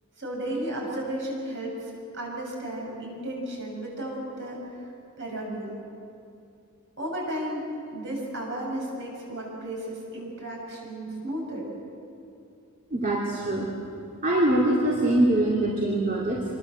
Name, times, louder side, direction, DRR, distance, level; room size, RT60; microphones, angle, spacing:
voice 1, 0.2-4.9 5.2-5.8 7.0-11.7, right 1 dB, 55° right, -1 dB, 7.5 m, -34 dB
voice 2, 12.9-13.7 14.2-16.4, right 1 dB, 35° right, -4 dB, 2.8 m, -23 dB
26.5 x 23.0 x 7.9 m, 2.6 s
head